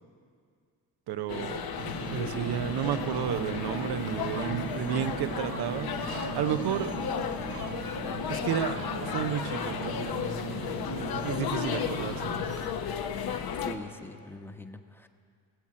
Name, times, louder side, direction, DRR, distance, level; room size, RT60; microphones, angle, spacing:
voice 1, 1.1-5.9 6.3-7.0 8.3-12.3, right 10 dB, 70° right, 12 dB, 0.8 m, -32 dB
sound 1, 1.3-13.7, left 7 dB, 65° left, 1.0 m, -34 dB
Ocean, 1.7-12.6, right 3 dB, 45° right, 1.7 m, -38 dB
voice 2, 13.6-15.1, left 1 dB, 5° left, 6 dB, 1.0 m, -42 dB
18.5 x 7.3 x 8.6 m, 2.2 s
cardioid pair, 85°, 40 cm